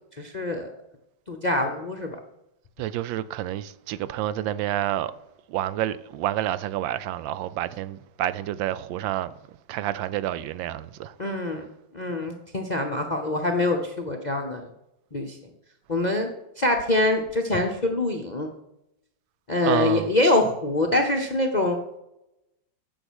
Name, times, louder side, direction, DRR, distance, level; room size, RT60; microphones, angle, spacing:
voice 1, 0.2-0.7 1.3-2.2 11.2-11.7 11.9-14.7 15.1-15.4 15.9-16.3 16.6-18.5 19.5-21.8, left 2 dB, 45° left, 0.6 m, -24 dB
voice 2, 2.8-5.1 5.5-9.3 9.7-11.1 19.6-20.1, right 12 dB, 85° right, 1.3 m, -29 dB
8.9 x 7.1 x 6.2 m
omnidirectional pair, 2.0 m